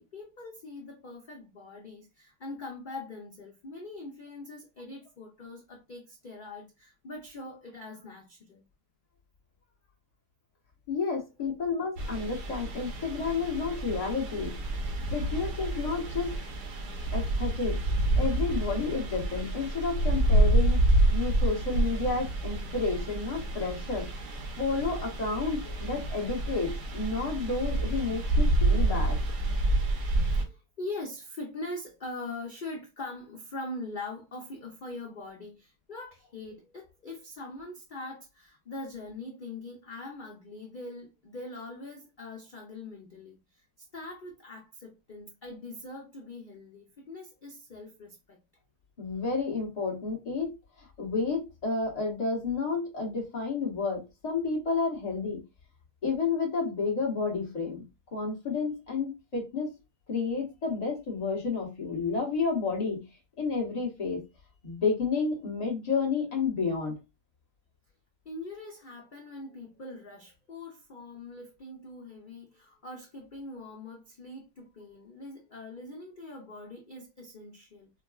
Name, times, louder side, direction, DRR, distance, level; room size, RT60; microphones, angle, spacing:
voice 1, 0.0-8.6 30.0-43.7 43.9-48.4 68.2-77.9, left 2 dB, 70° left, 0.4 m, -42 dB
voice 2, 10.9-14.6 15.1-16.4 17.1-17.8 18.2-20.8 21.1-24.1 24.6-29.2 49.0-50.6 51.0-55.4 56.0-57.8 58.1-59.7 60.1-63.0 63.4-64.2 64.6-66.9, left 4 dB, 25° left, 1.1 m, -30 dB
sound 1, 12.0-30.4, right 1 dB, 75° right, 1.4 m, -28 dB
4.8 x 2.2 x 2.3 m
omnidirectional pair, 1.8 m